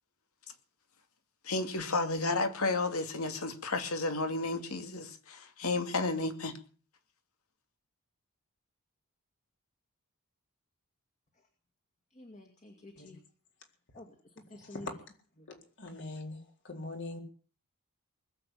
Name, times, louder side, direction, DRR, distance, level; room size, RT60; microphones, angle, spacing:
voice 1, 1.4-6.6, left 3 dB, 80° left, 2.4 m, -32 dB
voice 2, 12.1-13.2 13.9-15.0 15.4-15.5, left 2 dB, 35° left, 2.3 m, -51 dB
voice 3, 15.5-17.2, left 2 dB, 55° left, 4.1 m, -43 dB
20.5 x 8.1 x 8.5 m
head